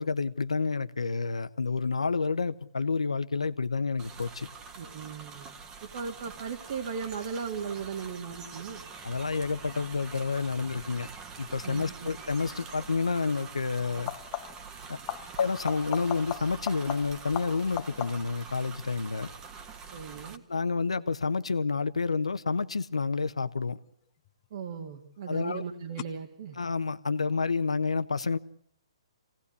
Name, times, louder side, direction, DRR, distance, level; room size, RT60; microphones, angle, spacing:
voice 1, 0.0-4.5 9.0-11.1 11.4-14.1 14.9-15.0 15.4-19.3 20.5-23.8 25.3-25.6 26.6-28.4, left 4 dB, 85° left, 1.1 m, -29 dB
sound 1, 4.0-20.4, right 5 dB, 20° right, 1.7 m, -45 dB
voice 2, 4.8-5.5 5.8-8.8 11.6-11.9 19.9-20.4 24.5-26.6, right 6 dB, 50° right, 2.3 m, -37 dB
sound 2, 12.5-12.8 13.9-14.7 15.1-18.4 23.9-24.5 26.0-26.1, left 17 dB, 30° left, 1.0 m, -38 dB
25.0 x 18.0 x 8.4 m
hypercardioid pair, 135°, 3 cm